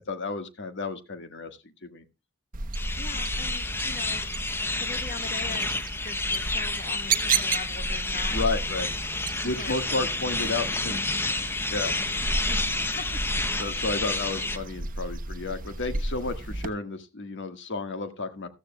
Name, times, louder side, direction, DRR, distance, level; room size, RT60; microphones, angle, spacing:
voice 1, 0.1-2.0 8.3-8.9 9.4-11.0 11.3-12.0 13.6-18.5, left 3 dB, 55° left, 9 dB, 1.5 m, -32 dB
sound 1, 2.5-16.7, right 3 dB, 40° right, 1.0 m, -33 dB
sound 2, 2.7-14.6, left 2 dB, 10° left, 0.7 m, -30 dB
voice 2, 2.9-4.3 4.7-8.4 9.4-9.7 12.5-12.6 12.9-13.2, left 4 dB, 40° left, 7 dB, 1.1 m, -41 dB
14.5 x 14.0 x 2.2 m, 0.26 s
head